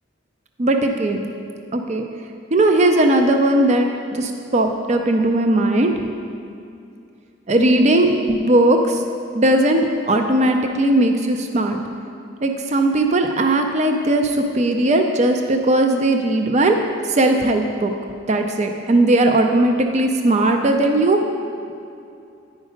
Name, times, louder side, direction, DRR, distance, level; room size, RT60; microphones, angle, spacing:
voice 1, 0.6-1.3 1.7-2.0 2.5-5.9 7.5-9.0 9.3-11.8 12.4-16.8 17.1-17.9 18.3-21.2, right 1 dB, 35° right, 4 dB, 0.4 m, -18 dB
10.0 x 5.2 x 5.1 m, 2.6 s
head